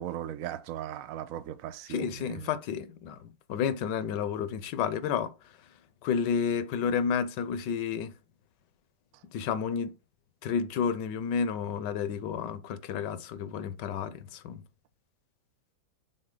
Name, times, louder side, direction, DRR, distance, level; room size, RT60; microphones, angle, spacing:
voice 1, 0.0-2.5 9.1-9.2, right 11 dB, 85° right, 0.7 m, -38 dB
voice 2, 1.9-5.7 6.0-8.1 9.3-9.9 10.4-14.6, left 7 dB, 70° left, 1.2 m, -31 dB
6.4 x 4.2 x 3.8 m
omnidirectional pair, 2.1 m